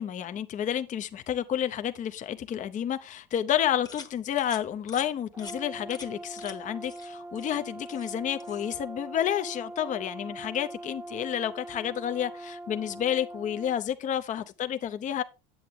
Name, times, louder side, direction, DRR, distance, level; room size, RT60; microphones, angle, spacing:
voice 1, 0.0-15.2, left 10 dB, 35° left, 0.7 m, -30 dB
sound 1, 3.9-4.1 4.4-4.6 4.9-5.1 5.4-5.6 5.9-6.1 6.4-6.6 6.8-7.1 7.4-8.2 8.4-8.7, left 4 dB, 20° left, 1.1 m, -45 dB
Brass instrument, 5.3-13.8, right 2 dB, 10° right, 0.6 m, -42 dB
8.6 x 7.6 x 3.6 m
supercardioid pair, 90°, 21 cm